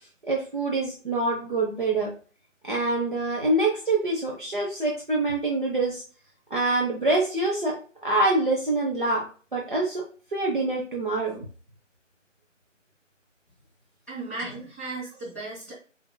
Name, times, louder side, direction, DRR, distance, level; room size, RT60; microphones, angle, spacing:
voice 1, 0.3-2.1 2.6-6.0 6.5-9.3 9.5-10.0 10.3-11.4, right 2 dB, 40° right, -3 dB, 0.9 m, -25 dB
voice 2, 14.1-15.7, right 3 dB, 15° right, -10 dB, 1.4 m, -36 dB
7.3 x 2.8 x 2.2 m, 0.38 s
figure-of-eight pair, 165°, 38 cm